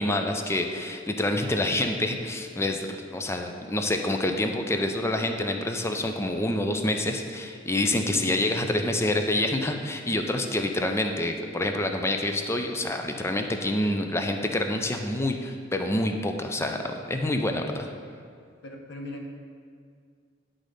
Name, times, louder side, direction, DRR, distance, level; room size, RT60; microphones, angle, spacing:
voice 1, 0.0-16.8 17.1-17.9, left 1 dB, 15° left, 5 dB, 0.5 m, -27 dB
voice 2, 8.0-8.4 18.6-19.3, left 1 dB, 65° left, 1 dB, 1.0 m, -39 dB
9.9 x 3.8 x 5.0 m, 2.1 s
head